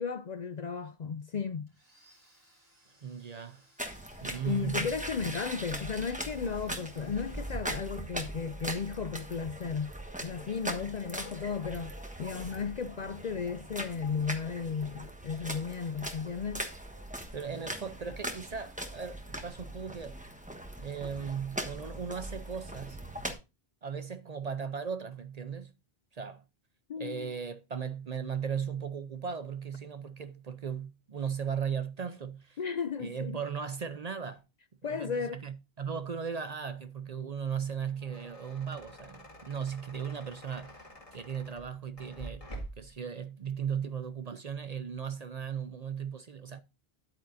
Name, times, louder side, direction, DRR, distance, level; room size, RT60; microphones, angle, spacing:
voice 1, 0.0-1.7 4.4-10.0 10.2-16.7 26.9-27.3 32.6-33.4 34.8-35.4, left 6 dB, 50° left, 0.5 m, -34 dB
Domestic sounds home sounds, 1.7-8.5, right 1 dB, 70° right, 4.2 m, -65 dB
voice 2, 3.0-3.7 4.2-4.9 17.3-20.2 20.8-23.0 23.8-25.7 26.1-26.4 27.0-32.6 33.0-34.4 34.8-40.8 41.1-42.4 42.8-46.6, right 7 dB, 45° right, 0.6 m, -37 dB
sound 1, 3.8-23.3, right 1 dB, 10° right, 1.1 m, -40 dB
sound 2, 37.9-43.0, right 1 dB, 35° left, 2.0 m, -47 dB
10.0 x 8.8 x 2.6 m
omnidirectional pair, 1.1 m